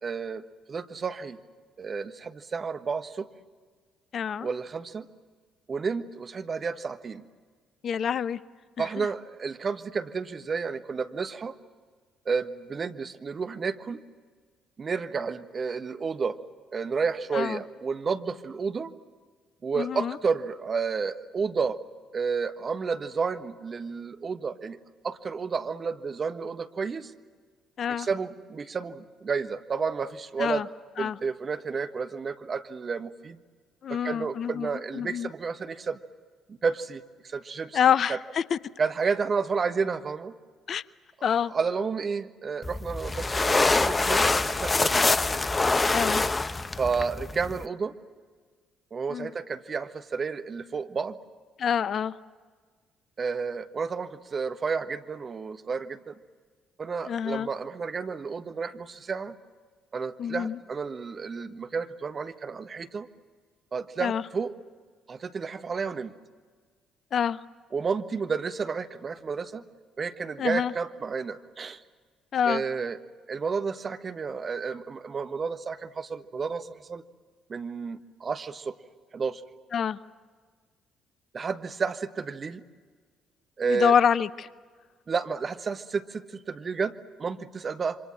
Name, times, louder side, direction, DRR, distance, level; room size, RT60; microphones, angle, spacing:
voice 1, 0.0-0.4 0.7-1.4 1.8-3.3 4.4-5.1 5.7-7.2 8.8-11.6 12.2-14.0 14.8-16.4 16.7-18.9 19.6-21.8 22.1-24.8 25.0-27.1 28.0-30.7 31.0-33.4 33.9-36.0 36.5-37.8 38.1-38.2 38.8-40.3 41.2-45.1 46.8-47.9 48.9-51.2 53.2-56.1 56.8-59.3 59.9-63.1 63.7-64.5 65.1-66.1 67.7-69.6 70.0-71.8 72.4-73.0 73.3-77.0 77.5-78.7 79.1-79.4 81.3-82.6 83.6-83.9 85.1-88.0, right 5 dB, 40° right, 9 dB, 1.4 m, -31 dB
voice 2, 4.1-4.5 7.8-8.4 8.8-9.1 17.3-17.6 19.7-20.2 27.8-28.1 30.4-30.7 31.0-31.2 33.8-35.3 37.7-38.6 40.7-40.8 41.2-41.5 45.9-46.2 49.1-49.3 51.6-52.2 57.0-57.5 60.2-60.6 64.0-64.2 67.1-67.4 70.4-70.7 72.3-72.6 79.7-80.0 83.7-84.5, left 8 dB, 50° left, 18 dB, 0.7 m, -26 dB
sound 1, 42.6-47.7, left 3 dB, 25° left, 1.0 m, -25 dB
28.0 x 25.0 x 7.7 m, 1.5 s
hypercardioid pair, 45°, 0 cm